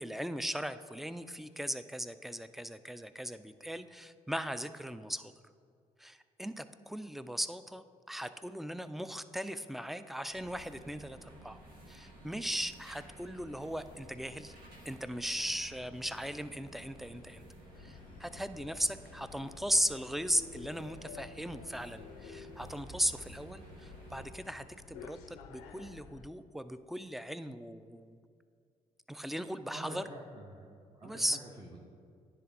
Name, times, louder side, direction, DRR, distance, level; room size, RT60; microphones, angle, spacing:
voice 1, 0.0-5.3 6.0-11.6 11.9-14.6 14.9-17.5 17.8-28.2 29.1-30.1 31.0-31.4, equal, ahead, 12 dB, 0.3 m, -38 dB
sound 1, 10.3-24.3, equal, 80° right, 1.2 m, -53 dB
sound 2, 17.7-26.3, left 6 dB, 85° left, 0.5 m, -52 dB
voice 2, 29.7-31.8, right 1 dB, 30° right, -3 dB, 1.0 m, -48 dB
9.9 x 3.5 x 4.1 m, 2.2 s
hypercardioid pair, 55°, 16 cm